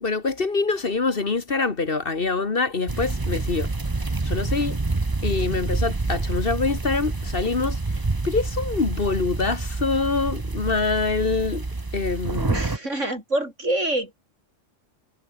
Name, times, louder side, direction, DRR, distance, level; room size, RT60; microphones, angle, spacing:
voice 1, 0.0-3.7 4.2-4.8 5.2-7.8 8.2-11.6 11.9-12.6, left 4 dB, 45° left, 1.8 m, -25 dB
sound 1, 2.9-12.8, right 3 dB, 20° right, 1.0 m, -27 dB
voice 2, 12.5-14.2, right 1 dB, 75° right, 7.8 m, -26 dB
omnidirectional pair, 1.3 m